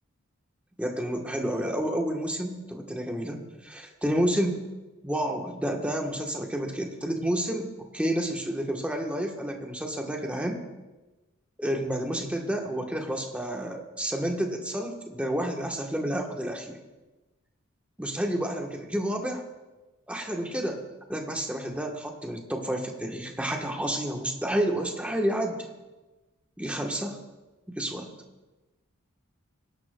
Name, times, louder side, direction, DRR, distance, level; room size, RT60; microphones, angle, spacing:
voice 1, 0.8-4.6 5.0-10.6 11.6-16.8 18.0-19.4 20.1-25.7 26.6-27.2 27.7-28.1, right 1 dB, 5° right, 2 dB, 1.0 m, -30 dB
19.0 x 11.0 x 2.2 m, 1.1 s
head